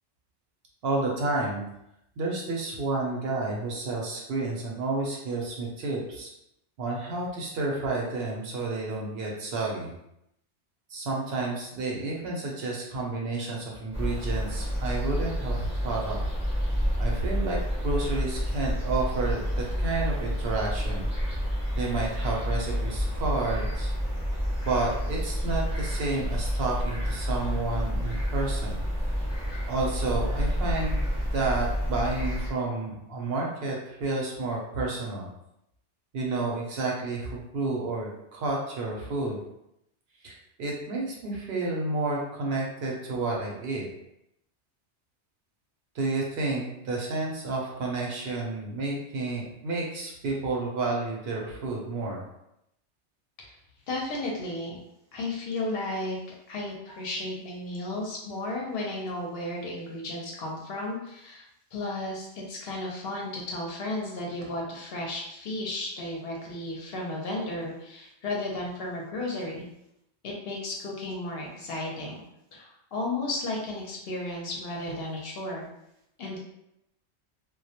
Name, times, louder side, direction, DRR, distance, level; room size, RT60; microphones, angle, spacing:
voice 1, 0.8-1.6 2.2-6.3 6.8-9.9 10.9-16.2 17.0-17.6 17.8-21.1 21.8-23.9 24.6-28.8 29.7-31.0 31.3-35.3 36.1-39.4 40.2-43.9 45.9-52.2, right 3 dB, 65° right, -2 dB, 0.7 m, -30 dB
sound 1, 13.9-32.5, equal, 5° right, 0.7 m, -29 dB
voice 2, 53.9-54.8 55.1-56.2 56.5-61.4 61.7-69.7 70.2-72.2 72.5-75.7 76.2-76.4, left 2 dB, 65° left, -1 dB, 0.7 m, -34 dB
2.2 x 2.1 x 2.7 m, 0.81 s
omnidirectional pair, 1.2 m